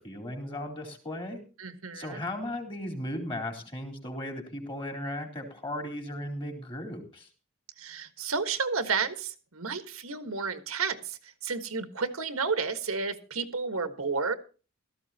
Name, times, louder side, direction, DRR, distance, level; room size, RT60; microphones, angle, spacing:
voice 1, 0.0-1.4 1.9-7.3, left 1 dB, 25° left, 4 dB, 3.8 m, -36 dB
voice 2, 1.6-2.2 7.8-14.3, right 5 dB, 85° right, 9 dB, 1.5 m, -31 dB
17.0 x 14.0 x 2.8 m, 0.35 s
head